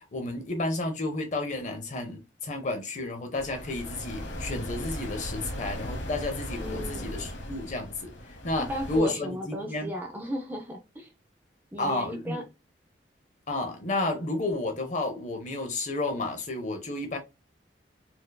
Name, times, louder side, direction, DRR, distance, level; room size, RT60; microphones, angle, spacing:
voice 1, 0.0-9.9 11.8-12.4 13.5-17.2, left 2 dB, 40° left, 0.7 m, -31 dB
sound 1, 3.3-9.0, left 1 dB, 80° left, 1.0 m, -37 dB
voice 2, 6.6-7.1 8.6-11.1 11.7-12.4, equal, 10° right, 0.5 m, -35 dB
4.2 x 2.6 x 2.2 m
head